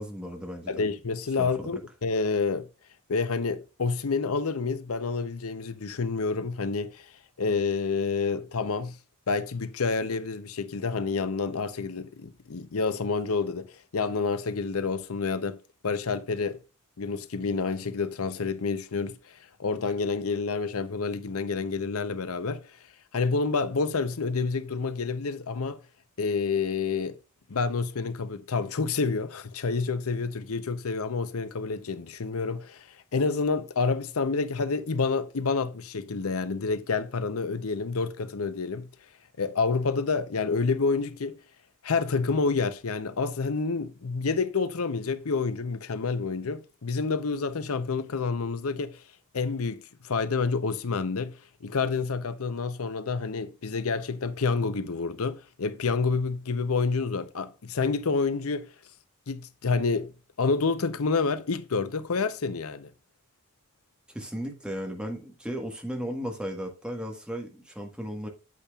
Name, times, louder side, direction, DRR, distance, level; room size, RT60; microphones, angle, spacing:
voice 1, 0.0-0.7 1.4-1.8 64.1-68.3, equal, 5° right, 1.4 m, -35 dB
voice 2, 0.7-2.7 3.1-7.1 7.4-9.0 9.3-13.7 13.9-15.6 15.8-16.6 17.0-22.8 23.1-25.8 26.2-27.2 27.5-38.9 39.4-41.4 41.8-49.0 49.3-58.7 59.3-62.9, left 4 dB, 75° left, 0.7 m, -28 dB
8.5 x 8.5 x 2.4 m
head